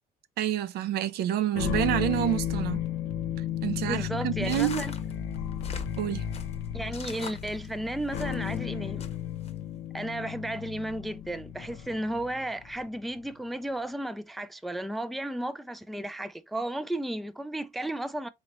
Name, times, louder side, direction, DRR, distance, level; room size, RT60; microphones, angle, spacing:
voice 1, 0.4-2.8 3.6-4.8 6.0-6.3, right 12 dB, 70° right, 0.5 m, -28 dB
sound 1, 1.5-12.9, left 10 dB, 80° left, 0.6 m, -34 dB
voice 2, 3.9-4.9 6.7-9.1 9.9-18.3, right 1 dB, ahead, 0.3 m, -34 dB
sound 2, 4.4-8.6 9.0-9.5, left 6 dB, 40° left, 0.8 m, -43 dB
4.0 x 2.9 x 3.0 m
cardioid pair, 110°, 17 cm